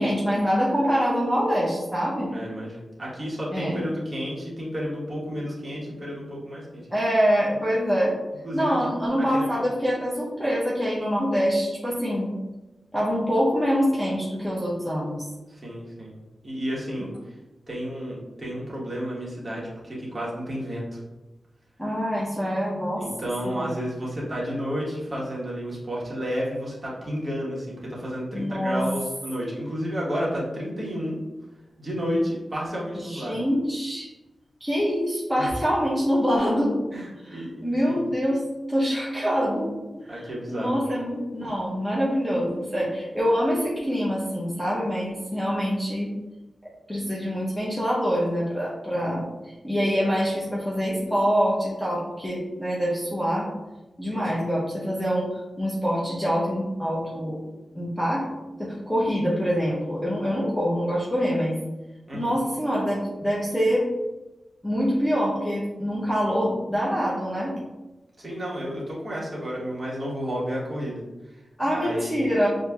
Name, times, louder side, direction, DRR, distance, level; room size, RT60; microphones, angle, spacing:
voice 1, 0.0-2.3 3.5-3.8 6.9-8.2 8.5-12.3 12.9-15.3 21.8-23.0 23.4-23.7 28.3-28.8 33.0-34.1 34.6-36.8 37.2-38.4 38.7-39.7 40.0-46.1 46.6-53.5 54.0-55.3 55.6-57.4 57.7-58.3 58.6-61.6 62.1-63.9 64.6-67.6 71.6-72.5, equal, 10° left, -7 dB, 0.7 m, -25 dB
voice 2, 2.3-6.8 8.4-8.8 9.3-9.6 15.5-16.1 16.4-17.1 17.7-21.0 23.0-31.2 31.8-33.5 35.4-35.5 36.9-37.6 37.8-38.0 40.1-40.7 54.1-54.3 62.1-62.4 68.2-71.4 71.7-72.2, equal, 20° right, -6 dB, 1.2 m, -31 dB
6.2 x 2.6 x 2.3 m, 1.1 s
wide cardioid pair, 155°, 0 cm